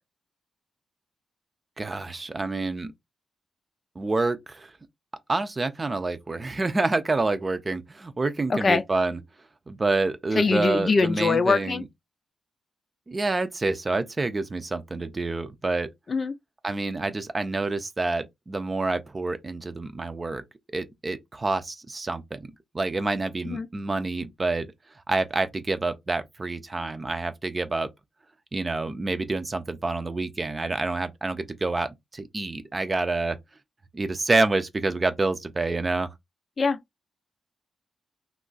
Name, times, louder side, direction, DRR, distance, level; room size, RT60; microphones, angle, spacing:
voice 1, 1.8-2.9 4.0-4.7 5.3-9.2 9.7-11.8 13.1-15.9 16.6-20.4 20.7-24.7 25.1-27.9 28.5-33.4 33.9-36.1, right 3 dB, 35° right, 0.6 m, -27 dB
voice 2, 8.5-8.8 10.4-11.8 16.1-16.3 23.4-23.7 36.6-36.8, left 4 dB, 50° left, 0.5 m, -23 dB
2.4 x 2.1 x 3.9 m
cardioid pair, 60°, 0 cm